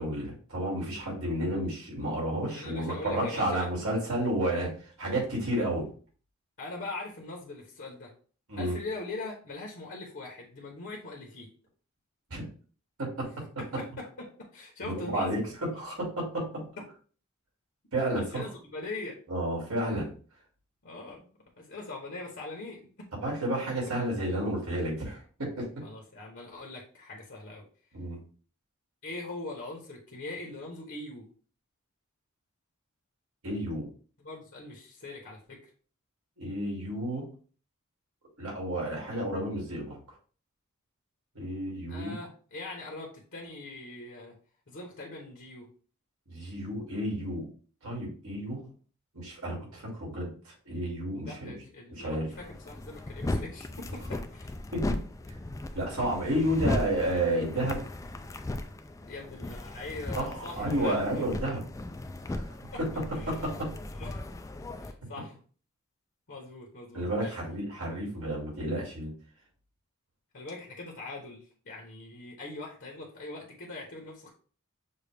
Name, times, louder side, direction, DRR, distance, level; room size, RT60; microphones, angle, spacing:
voice 1, 0.0-5.9 8.5-8.7 12.3-12.5 15.0-15.4 15.7-16.4 17.9-18.5 19.3-20.1 23.2-25.2 25.6-25.7 27.9-28.2 33.4-33.9 36.4-37.2 38.4-40.0 41.3-42.1 46.3-47.5 47.8-48.7 49.1-51.5 51.9-52.3 54.7-54.8 55.7-57.8 60.1-61.6 62.3-62.5 63.6-63.7 66.9-69.1, right 1 dB, 90° right, -2 dB, 2.5 m, -31 dB
voice 2, 2.6-3.7 6.6-8.1 8.6-11.5 13.6-15.4 18.1-19.2 20.8-21.3 21.6-22.9 25.8-27.7 29.0-31.3 34.2-35.6 41.9-44.3 44.7-45.7 51.2-54.5 59.1-61.2 63.1-63.5 63.9-64.2 64.8-65.4 66.3-67.3 70.3-74.3, left 2 dB, 60° left, -1 dB, 1.1 m, -42 dB
sound 1, 52.3-64.9, left 1 dB, 15° left, 0.3 m, -36 dB
6.5 x 2.4 x 3.3 m, 0.40 s
head